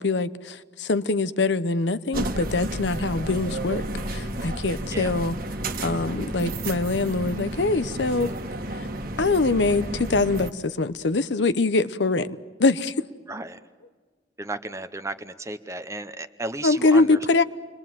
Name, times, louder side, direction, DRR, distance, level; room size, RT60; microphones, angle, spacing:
voice 1, 0.0-5.4 5.8-8.3 8.7-8.9 9.2-13.0 16.6-17.4, left 3 dB, 80° left, 0.9 m, -23 dB
sound 1, 2.1-10.5, right 1 dB, 55° right, 1.5 m, -31 dB
voice 2, 13.3-13.6 14.4-17.4, right 2 dB, 15° right, 0.8 m, -34 dB
29.5 x 22.5 x 7.6 m
head